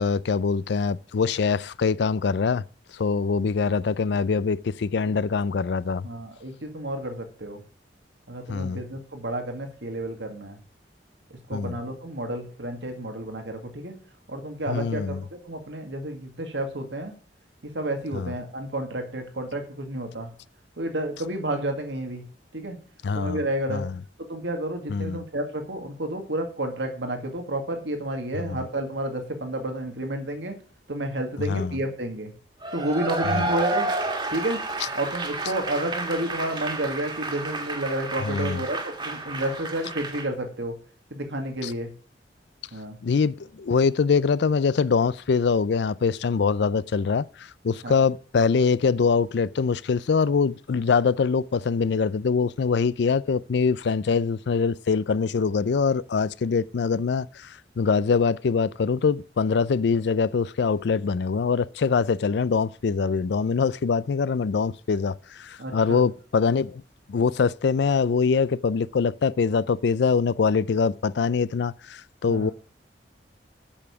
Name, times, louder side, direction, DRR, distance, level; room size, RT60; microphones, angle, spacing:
voice 1, 0.0-2.6 2.9-6.1 8.5-8.8 11.5-11.8 14.7-15.2 18.1-18.3 23.0-23.4 23.7-23.9 24.9-25.2 28.4-28.6 31.4-31.7 33.3-33.5 38.2-38.6 41.6-41.7 43.0-66.8 67.1-72.5, left 5 dB, 70° left, 0.4 m, -24 dB
voice 2, 6.0-7.6 8.3-10.6 11.5-14.0 14.3-17.1 17.7-20.3 20.8-22.2 22.5-22.8 23.1-23.8 24.3-30.5 30.9-32.3 32.7-33.9 34.3-34.6 34.9-40.7 41.1-41.9 42.7-43.0 47.8-47.9 65.6-66.0 72.3-72.5, right 1 dB, 90° right, 2.1 m, -31 dB
Cheering / Applause / Crowd, 32.6-40.3, right 2 dB, 30° right, 1.8 m, -30 dB
8.5 x 6.9 x 7.1 m
head